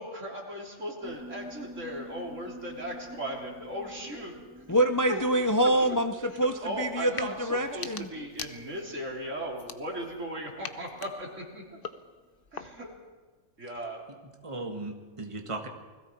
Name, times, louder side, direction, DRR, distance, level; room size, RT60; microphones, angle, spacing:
voice 1, 0.0-4.3 5.1-5.2 6.6-11.6 12.5-12.9 13.6-14.0, equal, 70° right, -1 dB, 3.9 m, -37 dB
Piano, 1.0-11.7, equal, 5° right, 1.0 m, -49 dB
voice 2, 4.7-8.1, right 1 dB, 20° left, 7 dB, 0.6 m, -26 dB
sound 1, 7.0-7.3 7.7-9.0 9.5-10.2 10.6-13.0, left 6 dB, 50° left, 1.0 m, -43 dB
voice 3, 14.1-15.7, right 2 dB, 25° right, 3 dB, 1.8 m, -37 dB
29.0 x 20.5 x 4.6 m, 1.3 s
omnidirectional pair, 1.3 m